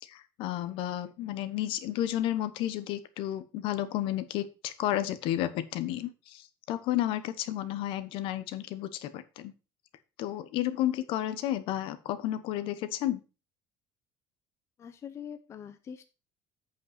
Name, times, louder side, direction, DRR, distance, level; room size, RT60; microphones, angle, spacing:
voice 1, 0.0-9.5 10.2-13.2, left 13 dB, 60° left, 13 dB, 1.1 m, -32 dB
voice 2, 14.8-16.1, left 8 dB, 30° left, 7 dB, 0.7 m, -43 dB
8.5 x 5.4 x 5.9 m, 0.31 s
cardioid pair, 165°, 10 cm